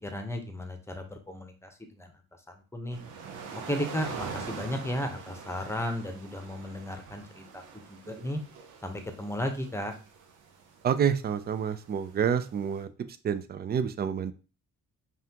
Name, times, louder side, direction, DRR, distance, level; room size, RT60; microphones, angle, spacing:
voice 1, 0.0-1.7 2.0-2.1 2.5-3.0 3.7-7.6 7.9-8.4 8.8-9.9, equal, 10° left, 5 dB, 0.8 m, -34 dB
sound 1, 2.9-12.8, right 5 dB, 85° right, 0.8 m, -44 dB
voice 2, 10.8-14.3, right 8 dB, 35° right, 12 dB, 0.4 m, -28 dB
5.5 x 2.4 x 2.8 m, 0.34 s
cardioid pair, 90°, 30 cm